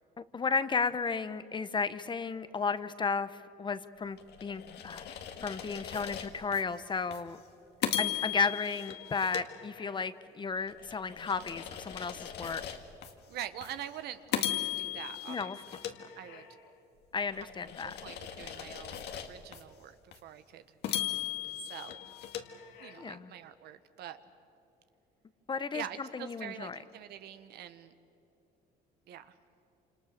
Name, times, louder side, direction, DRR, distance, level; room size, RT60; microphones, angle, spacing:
voice 1, 0.2-7.4 8.0-12.6 15.3-15.6 17.1-17.9 22.9-23.3 25.5-26.8, left 5 dB, 30° left, 13 dB, 1.0 m, -34 dB
sound 1, 4.2-6.6 7.1-7.3 7.8-10.2 10.7-13.1 13.6-13.8 14.3-16.7 17.2-19.6 20.1-20.2 20.8-23.2, left 11 dB, 75° left, 2.0 m, -38 dB
voice 2, 13.3-14.4 14.8-15.8 16.1-16.5 17.3-17.5 17.8-20.8 21.6-22.1 22.8-24.2 25.7-27.9 29.1-29.4, right 10 dB, 75° right, 10 dB, 1.4 m, -45 dB
28.0 x 27.0 x 6.7 m, 2.9 s
cardioid pair, 110°, 17 cm